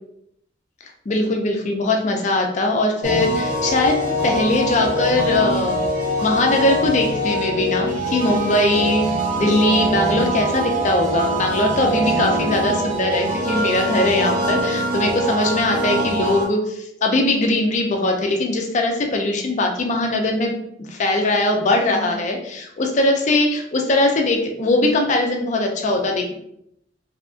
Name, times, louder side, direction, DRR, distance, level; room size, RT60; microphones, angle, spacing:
voice 1, 1.1-5.9 6.2-9.1 9.4-26.3, left 2 dB, 40° left, 3 dB, 0.4 m, -20 dB
sound 1, 3.0-16.5, right 1 dB, 45° right, 0.7 m, -23 dB
2.7 x 2.3 x 2.4 m, 0.75 s
head